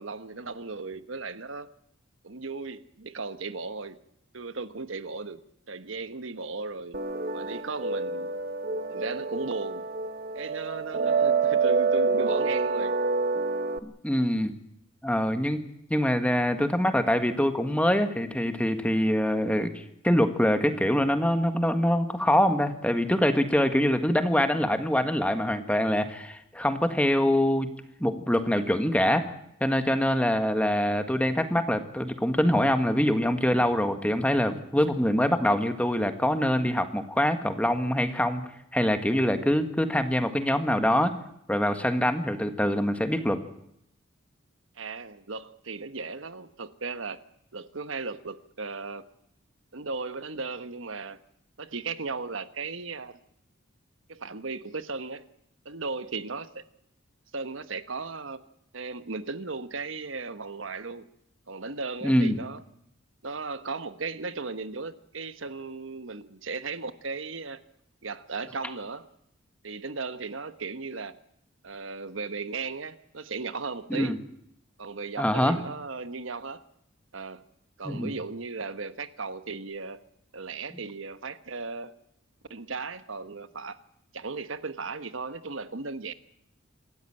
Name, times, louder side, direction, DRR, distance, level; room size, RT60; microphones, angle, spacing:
voice 1, 0.0-1.7 2.2-4.0 4.3-7.0 7.3-8.4 8.9-9.8 10.3-12.9 44.8-47.2 47.5-49.0 49.7-51.2 51.6-53.2 54.1-55.2 55.6-56.6 57.3-58.4 58.7-61.1 61.5-62.6 63.2-67.6 68.0-69.1 69.6-71.1 71.6-74.2 74.8-76.6 77.1-77.4 77.8-80.0 80.3-81.9 82.5-83.8 84.1-86.1, right 4 dB, 70° right, 12 dB, 1.3 m, -36 dB
sound 1, 6.9-13.8, right 4 dB, 45° right, 1.3 m, -27 dB
voice 2, 13.8-14.5 15.0-15.6 15.9-27.7 28.0-29.3 29.6-38.4 38.7-41.2 41.5-43.4 62.0-62.4 73.9-74.2 75.2-75.6 77.8-78.1, equal, 5° left, 8 dB, 1.7 m, -24 dB
27.0 x 13.5 x 8.9 m, 0.77 s
head